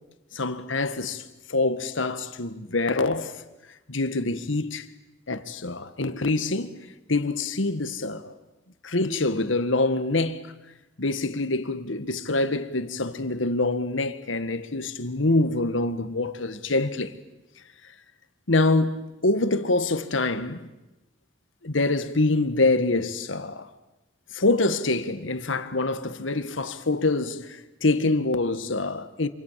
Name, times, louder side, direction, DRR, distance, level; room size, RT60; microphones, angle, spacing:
voice 1, 0.3-1.2 1.5-3.4 3.9-4.9 5.3-8.4 8.8-10.5 11.0-17.1 18.5-20.7 21.6-23.7 24.3-29.3, left 2 dB, 85° left, 1.7 m, -25 dB
27.5 x 26.0 x 7.5 m
head